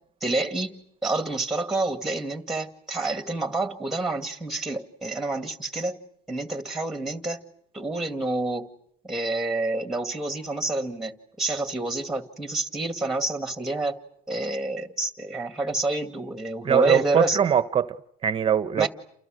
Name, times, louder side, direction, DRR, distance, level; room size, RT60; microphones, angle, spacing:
voice 1, 0.2-6.0 6.3-7.4 7.7-8.7 9.0-14.0 14.3-17.4 18.8-18.9, right 2 dB, ahead, 2.2 m, -28 dB
voice 2, 16.6-18.0 18.2-18.9, right 9 dB, 30° right, 1.1 m, -22 dB
29.5 x 28.5 x 6.6 m
cardioid pair, 140°, 19 cm